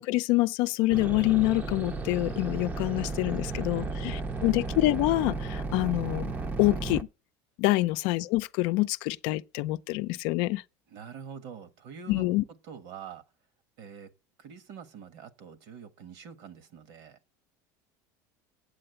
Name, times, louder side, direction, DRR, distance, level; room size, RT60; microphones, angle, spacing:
voice 1, 0.0-6.3 6.6-7.1 7.6-10.6 12.1-12.4, left 19 dB, 65° left, 0.5 m, -26 dB
sound 1, 0.9-7.0, right 3 dB, 20° right, 0.6 m, -34 dB
voice 2, 3.3-4.4 7.7-7.9 10.9-12.3 12.6-13.2 13.8-14.1 14.4-17.2, right 7 dB, 65° right, 1.5 m, -46 dB
8.6 x 7.8 x 7.8 m
supercardioid pair, 135°, 9 cm